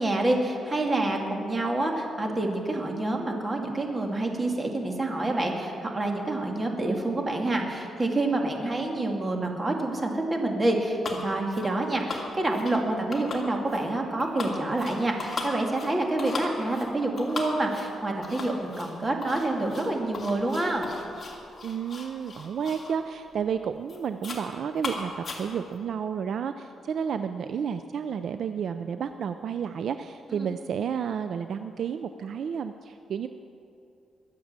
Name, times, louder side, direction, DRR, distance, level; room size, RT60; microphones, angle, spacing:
voice 1, 0.0-20.9 30.3-30.5, right 2 dB, 25° right, 2 dB, 2.2 m, -27 dB
sound 1, 11.0-11.2 11.5-11.8 12.1-12.8 13.1-13.9 14.2-23.0 23.3-23.6 23.9-24.5 24.8-25.8, left 3 dB, 35° left, 2.3 m, -37 dB
voice 2, 21.6-33.3, right 7 dB, 65° right, 9 dB, 0.5 m, -31 dB
22.0 x 7.5 x 7.4 m, 2.6 s
cardioid pair, 120°, 0 cm